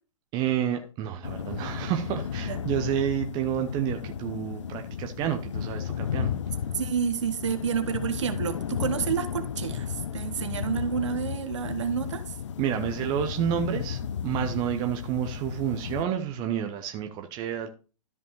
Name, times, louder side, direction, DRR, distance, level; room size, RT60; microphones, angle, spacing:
voice 1, 0.3-6.4 12.6-17.7, right 9 dB, 25° right, 0.7 m, -29 dB
sound 1, 1.2-16.0, left 8 dB, 60° left, 0.7 m, -34 dB
voice 2, 6.7-12.4, right 7 dB, 60° right, 1.4 m, -29 dB
13.0 x 5.2 x 3.2 m
figure-of-eight pair, 120°, 18 cm